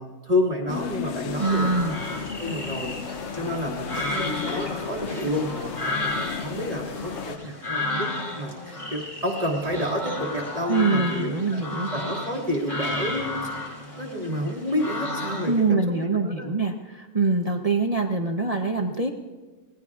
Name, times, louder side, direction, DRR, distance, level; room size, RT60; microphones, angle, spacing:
voice 1, 0.0-2.0 2.4-8.1 8.3-11.6 11.9-13.4 14.0-16.5, left 1 dB, 20° right, -1 dB, 1.9 m, -30 dB
sound 1, 0.7-7.4, left 7 dB, 60° left, 0.7 m, -34 dB
sound 2, 1.4-15.7, left 1 dB, 20° left, 2.4 m, -33 dB
voice 2, 1.4-2.0 10.7-11.9 15.5-19.1, right 3 dB, 55° right, 3 dB, 0.4 m, -24 dB
sound 3, 9.6-11.2 11.5-11.9 12.8-15.9, right 2 dB, 80° right, 1.8 m, -44 dB
26.5 x 20.0 x 2.4 m, 1.3 s
omnidirectional pair, 1.8 m